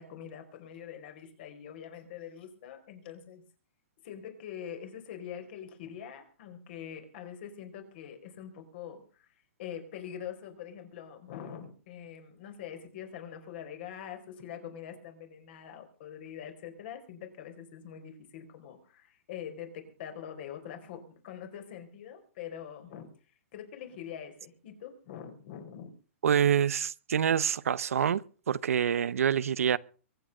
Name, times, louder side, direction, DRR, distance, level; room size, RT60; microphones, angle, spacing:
voice 1, 0.0-3.4 4.0-25.9, left 9 dB, 45° left, 4.5 m, -44 dB
voice 2, 26.2-29.8, right 8 dB, 90° right, 0.8 m, -26 dB
23.5 x 9.0 x 5.5 m
hypercardioid pair, 160°, 8 cm